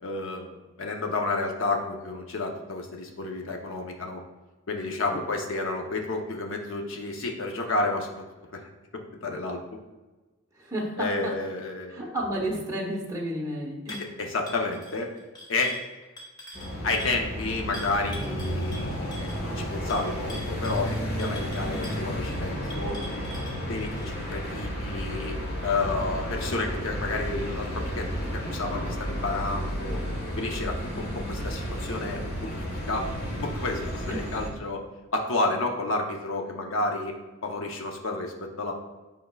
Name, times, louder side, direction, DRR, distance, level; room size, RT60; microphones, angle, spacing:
voice 1, 0.0-4.2 4.7-8.1 8.5-9.6 11.0-12.2 13.9-15.1 15.5-15.7 16.8-23.0 23.4-25.4 25.6-28.1 28.5-30.0 30.4-33.1 33.4-34.8 35.1-38.7, left 3 dB, 60° left, 2 dB, 0.7 m, -31 dB
voice 2, 10.6-11.3 11.9-14.1 34.1-34.2, right 1 dB, 15° right, -4 dB, 0.9 m, -32 dB
sound 1, 13.9-14.1 14.5-17.2 17.7-24.1, left 1 dB, 20° left, 1.0 m, -44 dB
sound 2, 16.5-34.5, equal, 45° left, 1.7 m, -32 dB
7.9 x 5.3 x 2.3 m, 1.2 s
head